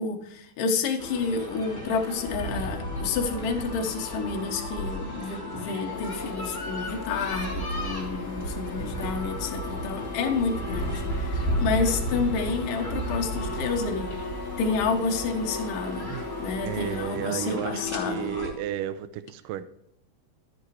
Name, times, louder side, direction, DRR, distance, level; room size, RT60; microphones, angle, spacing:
voice 1, 0.0-14.1 14.6-16.1 16.4-18.3, left 4 dB, 75° left, 2 dB, 2.7 m, -29 dB
sound 1, 1.0-18.5, equal, 5° left, 2.7 m, -33 dB
sound 2, 5.9-17.1, left 5 dB, 90° left, 2.6 m, -39 dB
voice 2, 16.6-19.6, right 11 dB, 80° right, 12 dB, 2.2 m, -33 dB
13.5 x 8.0 x 3.2 m, 0.76 s
omnidirectional pair, 4.0 m